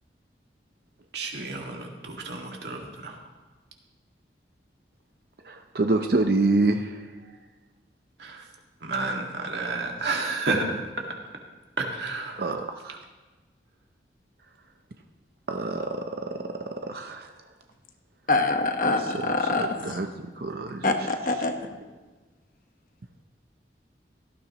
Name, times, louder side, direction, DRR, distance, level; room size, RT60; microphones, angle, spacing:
voice 1, 1.1-3.2 8.2-8.4 8.8-10.8 11.9-12.4, right 3 dB, 75° right, 1 dB, 1.9 m, -31 dB
voice 2, 5.4-7.4 9.0-9.1 12.4-13.0 15.5-16.5 16.8-17.3 19.0-20.1 20.3-21.1 21.4-21.5, right 2 dB, 55° right, 5 dB, 0.6 m, -28 dB
voice 3, 18.3-19.7 20.8-21.5, left 3 dB, 50° left, 5 dB, 1.2 m, -24 dB
17.0 x 12.5 x 3.0 m, 1.3 s
head